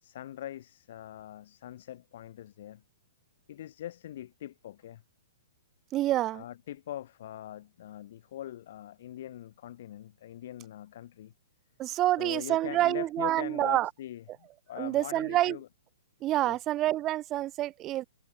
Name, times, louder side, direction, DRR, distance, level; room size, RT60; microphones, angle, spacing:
voice 1, 0.0-2.8 3.5-5.0 6.3-11.3 12.2-15.7 16.4-16.6, left 12 dB, 50° left, 0.8 m, -42 dB
voice 2, 5.9-6.4 11.8-13.9 14.8-15.6 16.2-18.0, right 15 dB, 25° right, 0.3 m, -27 dB
figure-of-eight pair, 115°, 0 cm